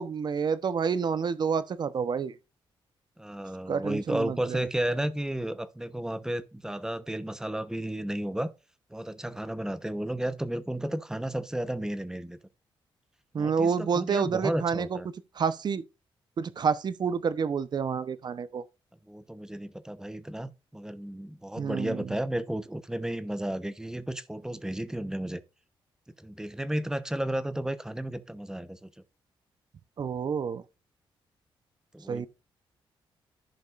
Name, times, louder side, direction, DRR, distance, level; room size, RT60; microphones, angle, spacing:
voice 1, 0.0-2.3 3.7-4.6 13.3-15.0 15.4-15.8 16.4-18.6 21.6-22.1 30.0-30.6 32.1-32.3, right 6 dB, 50° right, 0.8 m, -29 dB
voice 2, 3.2-8.5 8.9-12.4 13.3-15.1 19.1-25.4 26.2-28.9 31.9-32.3, right 1 dB, 5° right, 0.9 m, -33 dB
14.5 x 5.3 x 2.5 m
cardioid pair, 95°, 9 cm